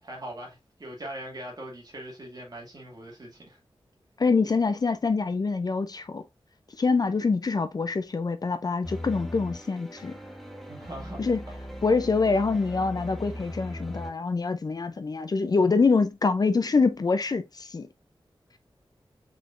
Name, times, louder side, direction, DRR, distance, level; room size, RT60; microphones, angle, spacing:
voice 1, 0.0-3.6 10.7-11.3, right 1 dB, 45° right, 2.2 m, -41 dB
voice 2, 4.2-6.2 6.8-10.1 11.2-11.4 11.8-17.9, left 4 dB, 45° left, 0.5 m, -25 dB
sound 1, 8.8-14.1, equal, ahead, 1.1 m, -39 dB
4.6 x 4.2 x 2.5 m
wide cardioid pair, 105°, 9 cm